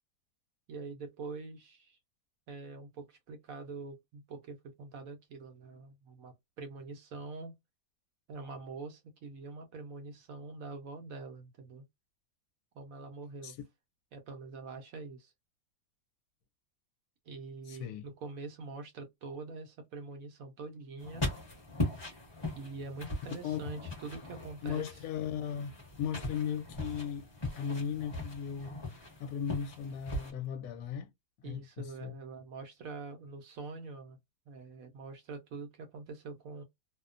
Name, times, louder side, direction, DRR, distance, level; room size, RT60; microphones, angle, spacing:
voice 1, 0.7-2.0 2.5-7.5 8.3-11.8 12.7-13.6 14.1-15.3 17.3-21.3 22.5-25.0 31.4-34.2 34.5-36.6, right 4 dB, 65° right, 0.9 m, -44 dB
voice 2, 17.7-18.1 23.4-23.6 24.6-27.3 27.6-28.8 29.2-31.1 31.4-32.2, left 8 dB, 75° left, 1.0 m, -37 dB
sound 1, 21.0-30.3, left 2 dB, 20° left, 0.8 m, -39 dB
2.8 x 2.1 x 2.4 m
omnidirectional pair, 1.8 m